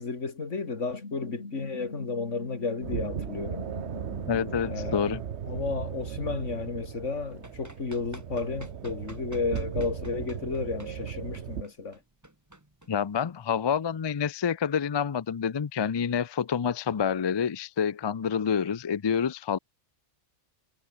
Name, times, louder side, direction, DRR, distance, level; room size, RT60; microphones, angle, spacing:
voice 1, 0.0-3.7 4.7-5.0 5.4-12.0, left 4 dB, 85° left, 2.7 m, -33 dB
sound 1, 0.9-4.8, left 3 dB, 65° left, 3.2 m, -43 dB
sound 2, 2.8-11.6, right 8 dB, 70° right, 1.2 m, -37 dB
voice 2, 4.3-5.2 12.9-19.6, left 7 dB, 45° left, 0.3 m, -28 dB
Run, 7.4-13.5, right 1 dB, 15° right, 2.1 m, -50 dB
omnidirectional pair, 1.2 m